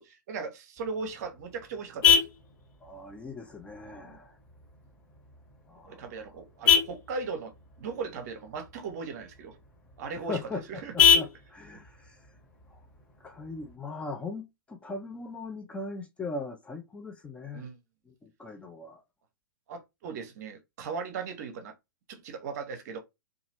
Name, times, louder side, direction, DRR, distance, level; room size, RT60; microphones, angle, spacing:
voice 1, 0.0-2.2 3.9-4.2 5.8-7.5 7.8-9.6 10.0-10.9 17.5-17.8 19.7-21.7 22.1-23.0, right 5 dB, 50° right, 0.7 m, -38 dB
Vehicle horn car horn honking, 0.8-13.8, left 7 dB, 30° left, 1.3 m, -29 dB
voice 2, 2.8-4.4 5.7-6.0 10.3-12.2 12.7-12.8 13.2-17.6 18.1-19.0, left 3 dB, 10° left, 0.4 m, -39 dB
2.9 x 2.4 x 2.8 m
figure-of-eight pair, 110°, 12 cm